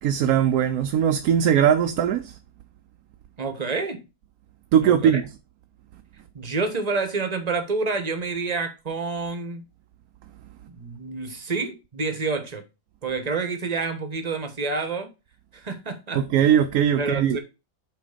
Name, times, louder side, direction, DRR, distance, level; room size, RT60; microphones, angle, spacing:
voice 1, 0.0-2.4 4.7-5.2 16.1-17.4, right 9 dB, 80° right, 1.1 m, -20 dB
voice 2, 3.4-4.0 4.8-5.2 6.3-9.6 10.7-12.6 13.0-15.1 15.5-16.2 17.0-17.4, right 4 dB, 30° right, 1.1 m, -28 dB
8.3 x 3.2 x 5.0 m
omnidirectional pair, 1.5 m